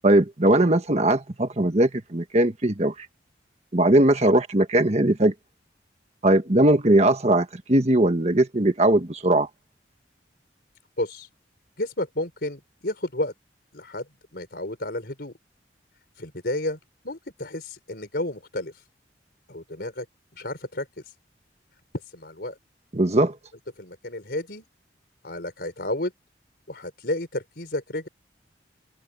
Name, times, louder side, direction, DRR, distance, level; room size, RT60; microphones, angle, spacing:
voice 1, 0.0-3.1 3.7-5.3 6.2-9.5 22.9-23.4, right 1 dB, 40° right, 1.4 m, -20 dB
voice 2, 11.0-11.3 11.8-13.3 13.7-15.3 16.2-16.8 17.0-18.8 19.5-20.1 20.3-21.1 21.9-22.6 23.2-23.3 23.8-24.6 25.2-26.1 26.7-28.1, left 1 dB, 60° left, 5.1 m, -31 dB
head